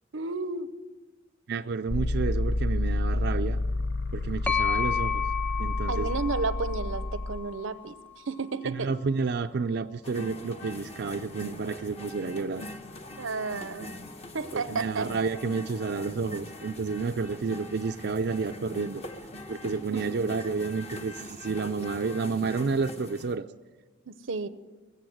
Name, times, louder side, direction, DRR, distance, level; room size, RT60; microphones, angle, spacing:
voice 1, 0.1-0.7 5.9-8.9 13.2-14.0 14.3-15.1 19.9-20.1 24.1-24.5, right 4 dB, 90° right, 14 dB, 0.8 m, -32 dB
voice 2, 1.5-3.6 4.1-5.2 5.6-6.1 8.6-12.6 14.5-19.0 19.5-23.5, right 4 dB, 55° right, 6 dB, 0.5 m, -30 dB
sound 1, 1.9-7.4, left 1 dB, 60° left, 0.6 m, -29 dB
sound 2, 4.5-8.2, left 8 dB, 10° left, 0.4 m, -32 dB
sound 3, 10.0-23.4, left 1 dB, 35° left, 1.0 m, -43 dB
21.0 x 8.0 x 7.9 m, 1.3 s
head